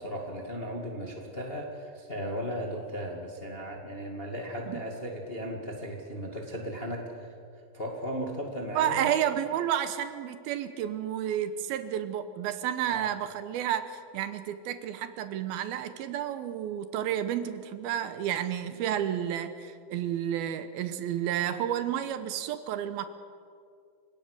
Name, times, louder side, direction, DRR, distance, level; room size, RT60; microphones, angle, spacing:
voice 1, 0.0-7.3 7.7-9.1 12.9-13.1, equal, 20° left, 1 dB, 1.5 m, -36 dB
voice 2, 8.8-23.1, right 10 dB, 80° right, 11 dB, 2.6 m, -31 dB
29.5 x 17.0 x 6.6 m, 2.3 s
omnidirectional pair, 4.6 m